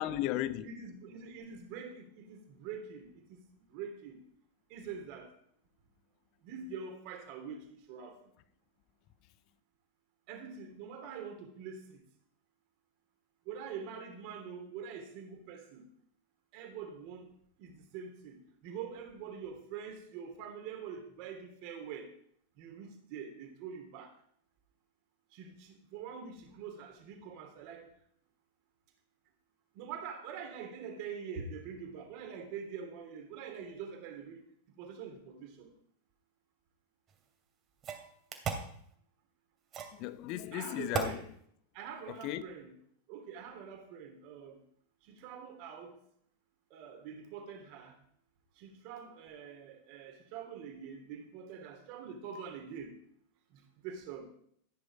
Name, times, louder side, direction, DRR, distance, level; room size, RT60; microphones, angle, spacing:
voice 1, 0.0-0.7 39.9-41.2 42.1-42.4, left 14 dB, 40° left, 1.0 m, -35 dB
voice 2, 0.6-3.4 3.7-4.2 4.7-5.3 6.4-8.2 10.3-12.0 13.4-15.9 16.5-17.3 17.6-22.1 22.6-24.1 25.3-27.9 29.7-34.4 34.7-35.7 40.5-41.2 41.7-42.7 43.1-44.6 45.0-46.0 46.7-48.0 48.6-53.0 53.5-54.2, right 6 dB, 45° right, 3.3 m, -45 dB
sound 1, 37.1-37.2 37.8-38.7 39.7-40.0 40.9-41.2, right 6 dB, 30° right, 2.6 m, -35 dB
14.5 x 9.9 x 5.0 m
figure-of-eight pair, 90°, 0 cm